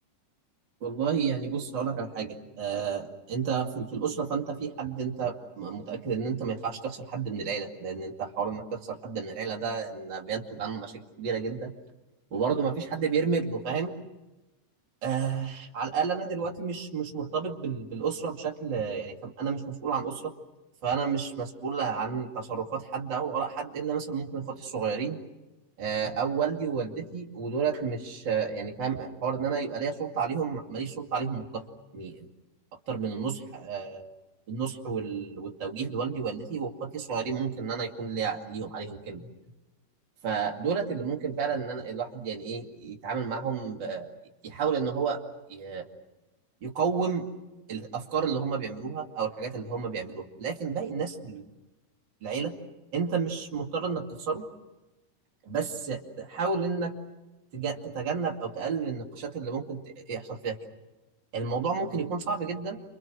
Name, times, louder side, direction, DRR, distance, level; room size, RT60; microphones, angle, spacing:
voice 1, 0.8-11.7 12.3-14.0 15.0-20.3 20.8-25.2 25.8-31.6 31.9-32.3 32.9-34.1 34.5-39.3 40.2-44.1 44.4-45.2 45.5-45.9 46.6-47.3 47.7-51.5 52.2-52.6 52.9-54.5 55.5-56.9 57.5-60.6 61.3-62.8, right 6 dB, 35° right, 0 dB, 2.9 m, -31 dB
30.0 x 25.5 x 6.3 m, 1.0 s
omnidirectional pair, 3.8 m